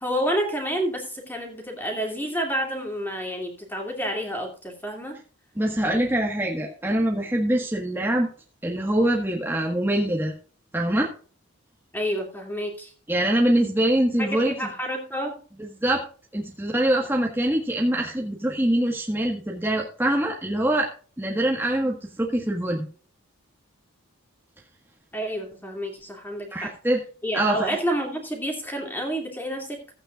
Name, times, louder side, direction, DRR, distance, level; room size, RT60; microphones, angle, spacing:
voice 1, 0.0-5.2 11.9-12.9 14.2-15.4 25.1-26.7 27.2-29.8, equal, 10° left, 1 dB, 2.5 m, -29 dB
voice 2, 5.6-8.3 8.6-10.3 10.7-11.1 13.1-14.7 15.6-16.1 16.3-20.9 21.2-22.9 26.5-27.0 27.3-27.8, right 1 dB, 10° right, -1 dB, 1.5 m, -24 dB
15.5 x 8.9 x 2.5 m, 0.39 s
head